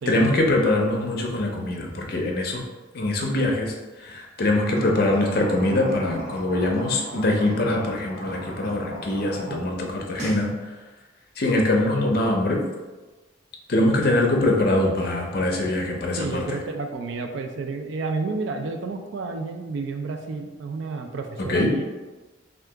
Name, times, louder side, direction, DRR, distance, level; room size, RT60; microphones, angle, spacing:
voice 1, 0.1-2.6 2.9-10.5 11.4-12.6 13.7-16.6 21.5-21.7, left 1 dB, 50° left, 0 dB, 0.5 m, -23 dB
sound 1, 4.5-9.6 9.9-10.5, right 1 dB, 35° right, 0.7 m, -37 dB
voice 2, 16.2-21.8, right 3 dB, 75° right, 4 dB, 0.4 m, -31 dB
2.8 x 2.4 x 3.4 m, 1.2 s
head